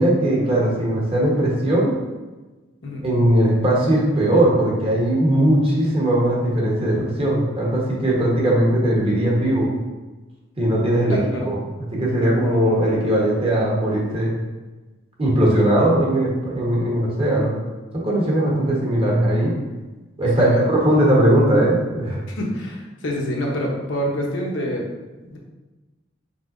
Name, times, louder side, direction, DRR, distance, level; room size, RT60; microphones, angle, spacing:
voice 1, 0.0-1.9 3.0-9.7 10.6-11.2 11.5-11.6 11.9-14.3 15.2-17.5 17.9-19.5 20.2-22.2, right 1 dB, 30° right, -4 dB, 1.1 m, -19 dB
voice 2, 11.1-11.5 20.4-20.7 22.3-24.9 25.3-25.4, equal, 75° left, -1 dB, 0.9 m, -26 dB
5.3 x 3.8 x 2.6 m, 1.2 s
head